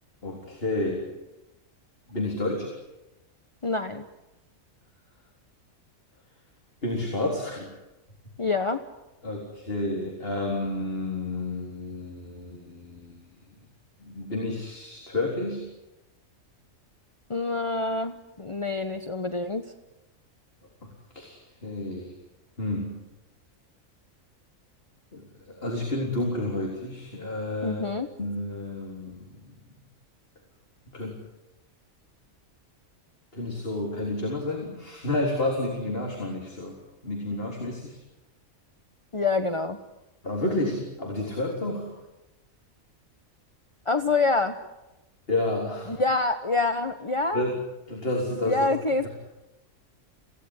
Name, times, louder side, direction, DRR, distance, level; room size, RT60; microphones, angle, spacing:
voice 1, 0.2-1.1 2.1-2.7 6.8-7.7 9.2-13.3 14.0-15.6 20.8-22.2 22.6-23.0 25.1-27.8 28.2-29.6 30.9-31.2 33.3-38.0 40.2-41.9 45.3-46.0 47.3-47.6 47.9-48.7 49.0-49.1, left 2 dB, 40° left, -1 dB, 4.1 m, -30 dB
voice 2, 3.6-4.1 8.4-8.8 17.3-19.7 27.6-28.1 39.1-39.8 43.9-44.6 45.9-47.4 48.5-49.1, left 3 dB, 25° left, 8 dB, 1.1 m, -26 dB
28.0 x 17.5 x 9.9 m, 0.98 s
omnidirectional pair, 1.5 m